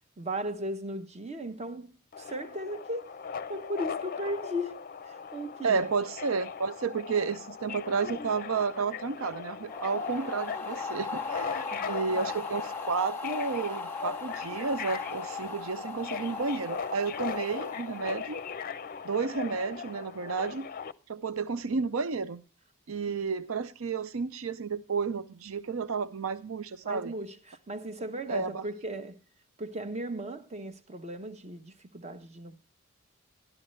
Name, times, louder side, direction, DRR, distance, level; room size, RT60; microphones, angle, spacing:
voice 1, 0.2-3.2 3.5-5.9 11.7-12.3 26.8-29.2 29.6-32.6, equal, 30° right, 1.0 m, -37 dB
Subway metro underground, 2.1-20.9, left 6 dB, 45° left, 0.5 m, -39 dB
voice 2, 5.6-18.4 19.0-20.7 21.1-22.4 22.9-27.1 28.3-28.7, right 5 dB, 75° right, 0.6 m, -31 dB
sound 1, 9.7-18.8, left 4 dB, 10° left, 1.1 m, -39 dB
13.0 x 12.5 x 3.2 m
head